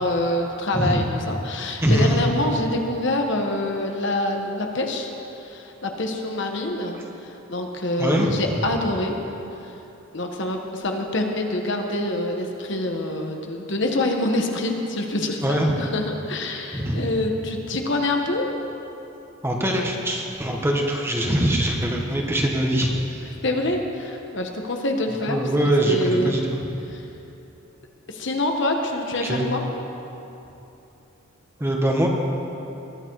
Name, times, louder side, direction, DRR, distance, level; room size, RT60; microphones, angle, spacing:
voice 1, 0.0-5.1 5.4-9.1 9.6-9.7 10.1-18.5 23.2-25.4 25.6-26.4 26.9-27.0 28.1-29.6, left 1 dB, 55° left, 2 dB, 1.4 m, -26 dB
voice 2, 1.8-2.2 8.0-8.3 15.4-15.7 16.7-17.0 19.4-22.9 25.3-26.7 29.2-29.5 31.6-32.1, right 1 dB, 10° right, 0 dB, 1.4 m, -22 dB
21.0 x 12.5 x 4.8 m, 3.0 s
head